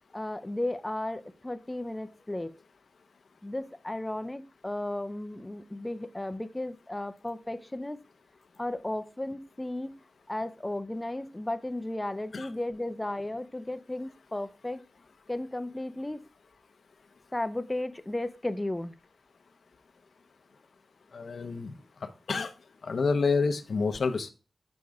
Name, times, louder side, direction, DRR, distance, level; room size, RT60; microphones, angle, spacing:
voice 1, 0.1-2.5 3.4-8.0 8.6-10.0 10.3-14.8 15.3-16.3 17.3-18.9, left 1 dB, 15° left, 0.5 m, -34 dB
voice 2, 21.1-21.7 22.3-22.5 22.8-24.3, left 4 dB, 80° left, 0.7 m, -28 dB
6.4 x 5.2 x 3.5 m
wide cardioid pair, 105°, 0 cm